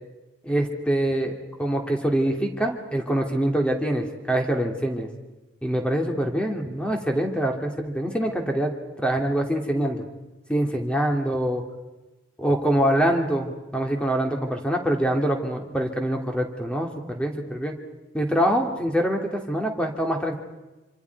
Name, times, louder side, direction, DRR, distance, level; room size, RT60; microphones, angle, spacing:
voice 1, 0.4-5.1 5.6-8.7 9.0-10.0 10.5-11.6 12.4-17.7 18.1-20.4, right 1 dB, 5° left, 2 dB, 2.5 m, -24 dB
26.5 x 26.0 x 4.7 m, 1.1 s
head